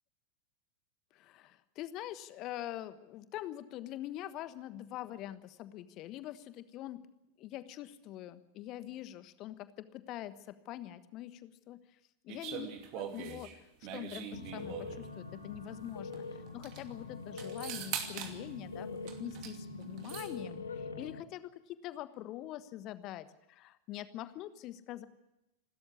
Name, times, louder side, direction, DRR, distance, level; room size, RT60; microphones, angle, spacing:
voice 1, 1.1-7.0 7.4-11.8 12.2-12.7 12.9-13.5 13.9-25.1, left 13 dB, 35° left, 13 dB, 1.3 m, -44 dB
sound 1, 12.3-15.1 16.1-16.2 16.5-16.8 17.4-18.4 19.1-19.6 19.8-20.3, right 9 dB, 40° right, 2.5 m, -42 dB
sound 2, 14.3-21.2, left 3 dB, 75° left, 1.8 m, -44 dB
27.5 x 13.0 x 8.5 m, 0.94 s
figure-of-eight pair, 90°, 0 cm